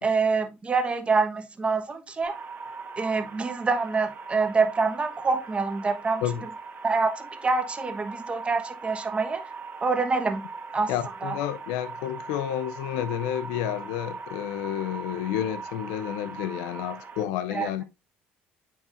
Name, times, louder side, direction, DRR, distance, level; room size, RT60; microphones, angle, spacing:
voice 1, 0.0-2.3 3.0-6.2 6.8-9.4 9.8-10.4 10.7-10.9 11.2-11.4 17.5-17.7, right 4 dB, 25° right, 1.2 m, -26 dB
sound 1, 2.2-17.2, right 4 dB, 50° right, 1.6 m, -40 dB
voice 2, 10.9-17.8, left 11 dB, 85° left, 0.5 m, -30 dB
8.7 x 4.7 x 2.6 m
supercardioid pair, 75°, 4 cm